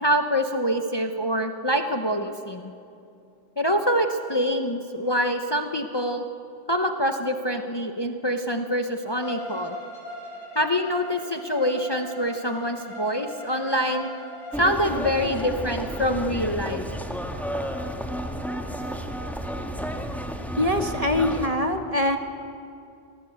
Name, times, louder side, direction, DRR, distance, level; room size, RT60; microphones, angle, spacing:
voice 1, 0.0-2.7 3.6-6.2 6.7-9.8 10.5-14.1 14.6-16.8, equal, 25° left, 5 dB, 1.0 m, -25 dB
Bowed string instrument, 9.1-16.3, left 1 dB, 70° left, 5.1 m, -40 dB
sound 1, 14.5-21.5, equal, ahead, 1.7 m, -32 dB
voice 2, 20.6-22.2, left 1 dB, 35° right, 5 dB, 1.7 m, -23 dB
26.0 x 19.5 x 8.2 m, 2.6 s
omnidirectional pair, 1.1 m